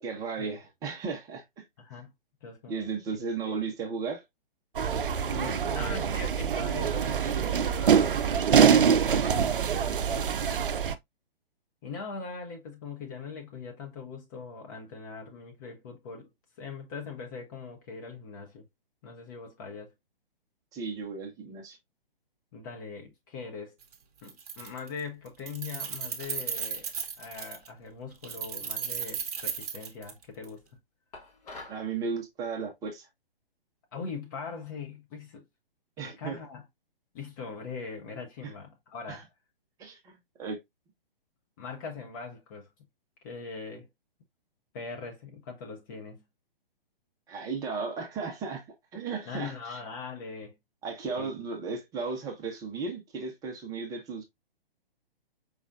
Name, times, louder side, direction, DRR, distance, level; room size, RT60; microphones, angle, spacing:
voice 1, 0.0-1.6 2.7-4.2 20.7-21.8 31.7-33.1 36.0-36.4 39.1-39.2 39.8-40.6 47.3-48.7 48.9-49.8 50.8-54.2, right 4 dB, 10° right, 0.8 m, -35 dB
voice 2, 1.8-2.1 2.4-2.9 3.4-3.6 5.2-8.2 8.5-10.3 11.8-16.3 16.6-18.7 19.0-19.9 22.5-23.8 24.2-26.9 27.2-30.6 33.9-35.4 36.0-36.7 37.1-39.3 41.6-42.7 43.2-43.9 44.7-46.2 49.3-50.6 51.2-51.3, left 5 dB, 20° left, 0.6 m, -41 dB
sound 1, 4.8-11.0, right 7 dB, 65° right, 0.5 m, -24 dB
Keys jangling, 23.8-23.9 24.2-25.0 25.3-27.7 28.2-30.5, right 7 dB, 40° right, 0.9 m, -35 dB
sound 2, 31.1-31.9, left 2 dB, 40° left, 1.4 m, -45 dB
4.8 x 3.1 x 2.4 m
figure-of-eight pair, 125°, 29 cm